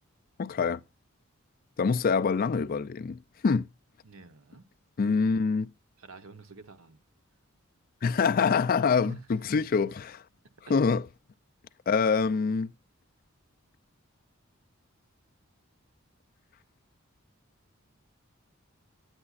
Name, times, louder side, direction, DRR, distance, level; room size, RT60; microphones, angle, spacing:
voice 1, 0.4-0.8 1.8-3.7 5.0-5.7 8.0-10.2 10.7-11.1 11.9-12.7, left 5 dB, 45° left, 0.4 m, -25 dB
voice 2, 4.0-4.7 6.0-7.0 9.0-9.3 10.7-10.8, right 4 dB, 85° right, 1.0 m, -47 dB
9.7 x 9.6 x 2.4 m
head